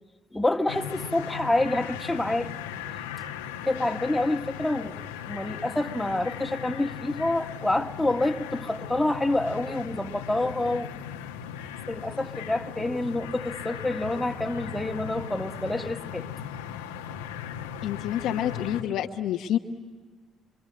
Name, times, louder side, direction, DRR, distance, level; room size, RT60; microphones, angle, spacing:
voice 1, 0.3-2.5 3.6-10.9 11.9-16.3, left 2 dB, 10° left, 1.9 m, -27 dB
sound 1, 0.7-18.8, left 8 dB, 85° left, 1.2 m, -38 dB
voice 2, 17.8-19.6, left 10 dB, 65° left, 1.2 m, -28 dB
26.5 x 26.0 x 8.7 m
hypercardioid pair, 50°, 0 cm